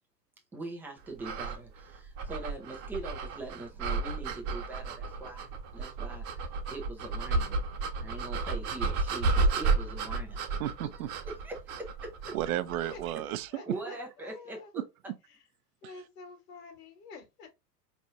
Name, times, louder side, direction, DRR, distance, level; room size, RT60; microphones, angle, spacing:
voice 1, 0.5-7.7 8.0-10.4 11.4-12.3 13.7-14.8, right 2 dB, 5° right, 0.4 m, -42 dB
sound 1, 1.2-13.1, right 3 dB, 35° right, 0.9 m, -32 dB
voice 2, 10.6-11.1 12.3-13.7 14.7-14.8 15.8-15.9, right 13 dB, 60° right, 0.6 m, -33 dB
voice 3, 12.9-14.7 15.3-15.5 15.8-17.5, left 4 dB, 60° left, 1.6 m, -49 dB
4.4 x 3.2 x 2.5 m
hypercardioid pair, 110°, 49 cm